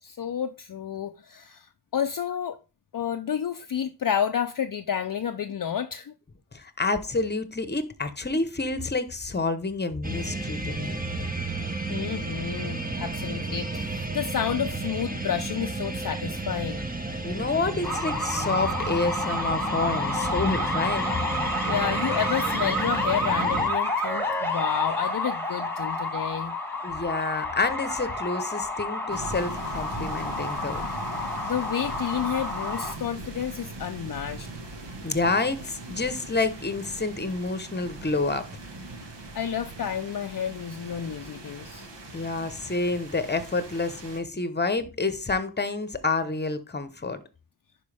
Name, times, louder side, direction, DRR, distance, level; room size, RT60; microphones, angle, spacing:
voice 1, 0.0-2.6 2.9-6.1 11.9-16.9 21.7-26.5 31.4-34.5 39.3-41.9, left 8 dB, 50° left, 0.5 m, -30 dB
voice 2, 6.5-11.0 17.2-21.1 26.8-30.8 35.0-38.5 42.1-47.2, left 3 dB, 25° left, 0.9 m, -28 dB
sound 1, 10.0-23.7, right 3 dB, 20° right, 1.0 m, -32 dB
sound 2, 17.8-32.9, left 2 dB, 5° left, 1.5 m, -29 dB
sound 3, 29.1-44.2, right 2 dB, 75° right, 1.5 m, -40 dB
10.5 x 4.6 x 3.4 m
wide cardioid pair, 80°, 43 cm